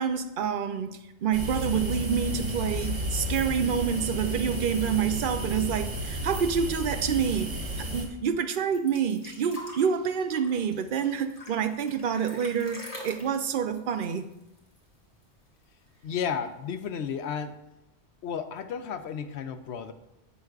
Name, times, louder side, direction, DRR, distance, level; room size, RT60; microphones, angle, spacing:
voice 1, 0.0-14.3, right 7 dB, 55° right, 8 dB, 0.7 m, -28 dB
sound 1, 1.3-8.1, equal, 70° right, 1.7 m, -32 dB
sound 2, 8.5-15.0 15.2-15.3 15.6-16.4 17.2-17.3, left 1 dB, 35° left, 1.7 m, -45 dB
voice 2, 16.0-17.6 18.2-19.9, left 7 dB, 70° left, 9 dB, 0.9 m, -33 dB
11.0 x 7.8 x 2.4 m, 0.90 s
omnidirectional pair, 1.2 m